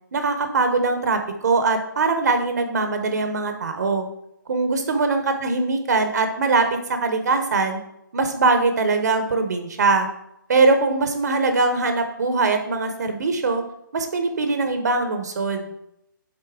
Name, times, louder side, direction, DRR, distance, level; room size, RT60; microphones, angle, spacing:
voice 1, 0.1-4.0 4.5-7.8 8.1-10.1 10.5-13.6 13.9-15.7, right 3 dB, 55° right, 6 dB, 0.8 m, -22 dB
6.7 x 4.1 x 3.5 m, 0.80 s
hypercardioid pair, 160°, 11 cm